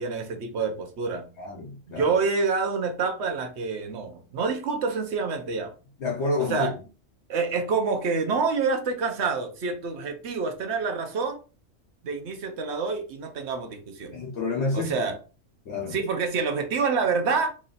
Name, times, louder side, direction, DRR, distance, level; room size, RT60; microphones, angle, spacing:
voice 1, 0.0-1.3 2.0-5.7 6.5-6.7 7.3-11.4 12.0-14.2 14.7-15.2 15.9-17.5, right 4 dB, 65° right, 1.0 m, -27 dB
voice 2, 1.4-2.1 6.0-6.7 14.1-14.9 15.6-16.0, left 3 dB, 65° left, 1.1 m, -29 dB
3.1 x 2.7 x 3.9 m
omnidirectional pair, 1.3 m